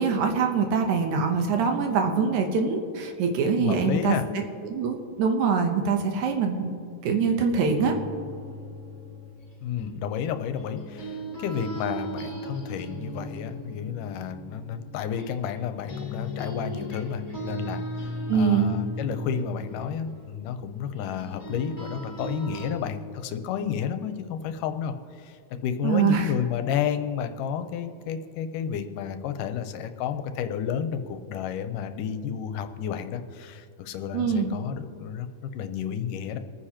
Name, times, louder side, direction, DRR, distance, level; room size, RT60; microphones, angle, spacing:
voice 1, 0.0-4.2 4.6-6.7 7.0-8.0 18.3-18.8 25.8-26.3 34.1-34.5, right 5 dB, 70° right, 4 dB, 2.2 m, -24 dB
voice 2, 3.6-4.2 9.6-36.4, left 8 dB, 90° left, 9 dB, 2.2 m, -31 dB
sound 1, 7.8-15.6 15.9-22.7, equal, 10° left, 2.4 m, -37 dB
27.0 x 9.8 x 2.9 m, 2.5 s
omnidirectional pair, 3.8 m